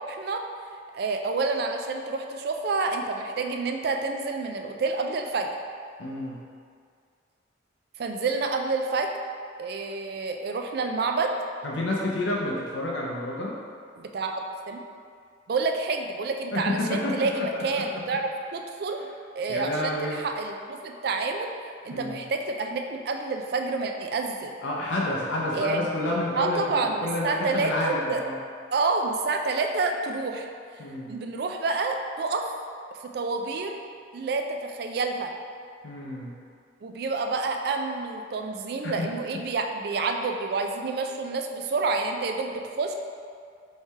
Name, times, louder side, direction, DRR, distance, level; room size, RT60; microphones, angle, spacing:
voice 1, 0.1-0.4 0.9-5.5 8.0-9.1 9.6-11.3 14.0-14.4 14.7-14.8 15.5-19.0 19.4-21.5 21.8-24.5 25.5-25.8 26.4-28.2 28.7-30.5 31.1-32.5 33.1-33.8 34.1-35.3 36.8-42.9, right 3 dB, 55° right, 3 dB, 0.3 m, -28 dB
voice 2, 6.0-6.4 11.6-13.6 16.5-17.8 19.5-20.2 21.9-22.2 24.6-28.4 30.8-31.1 35.8-36.3 38.8-39.1, left 1 dB, 75° left, -3 dB, 0.5 m, -29 dB
3.6 x 3.2 x 4.1 m, 2.2 s
head